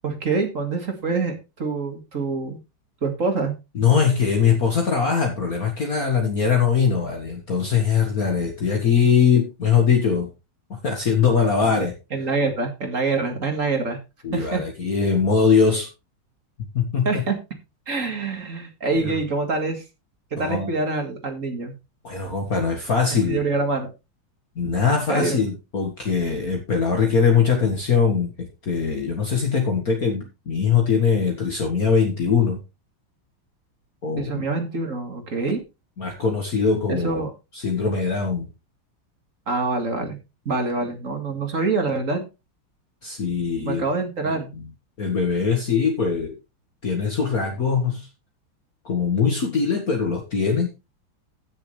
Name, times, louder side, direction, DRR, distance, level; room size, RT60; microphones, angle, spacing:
voice 1, 0.0-2.6 3.0-3.5 9.0-9.1 11.6-11.7 12.1-14.0 14.3-14.6 17.0-17.4 17.9-19.8 20.3-21.8 23.3-23.9 25.1-25.4 34.2-35.7 36.9-37.3 39.5-40.2 40.5-42.2 43.7-44.5, right 3 dB, 40° right, 5 dB, 2.3 m, -25 dB
voice 2, 3.8-10.3 10.8-11.9 14.2-15.9 16.7-17.1 18.9-19.1 20.4-20.7 22.0-23.4 24.6-32.6 34.0-34.4 36.0-37.2 37.5-38.5 43.0-43.8 45.0-46.3 46.8-48.1 48.9-50.7, left 6 dB, 45° left, 2 dB, 2.1 m, -21 dB
15.5 x 6.9 x 3.3 m, 0.26 s
omnidirectional pair, 2.3 m